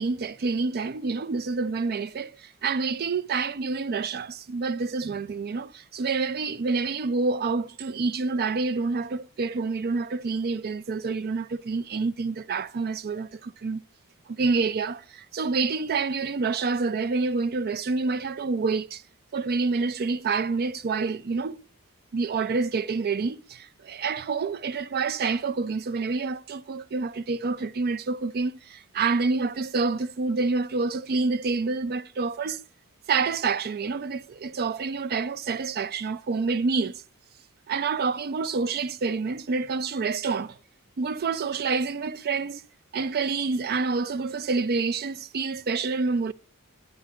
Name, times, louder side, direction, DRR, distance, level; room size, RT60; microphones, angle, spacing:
voice 1, 0.0-13.8 14.3-19.0 19.3-21.6 22.1-32.6 33.1-37.0 37.7-40.6 41.0-42.6 42.9-46.3, right 4 dB, 45° right, 0.4 m, -27 dB
10.5 x 9.4 x 3.6 m
head